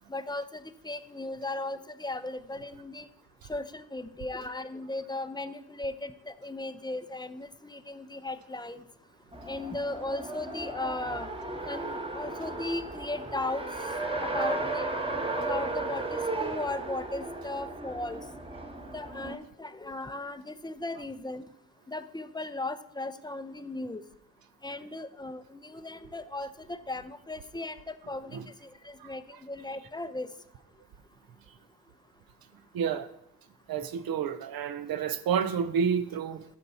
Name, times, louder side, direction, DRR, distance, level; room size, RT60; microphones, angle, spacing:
voice 1, 0.1-3.1 3.5-8.8 9.5-11.3 11.7-13.7 14.2-14.9 15.3-18.2 18.9-21.5 21.9-24.0 24.6-30.3, left 2 dB, 10° left, 0.5 m, -37 dB
Race car auto racing, 9.3-19.4, right 2 dB, 15° right, 1.1 m, -34 dB
voice 2, 32.7-33.1 33.7-36.4, right 7 dB, 65° right, 0.7 m, -29 dB
12.5 x 4.5 x 4.1 m
supercardioid pair, 65°, 39 cm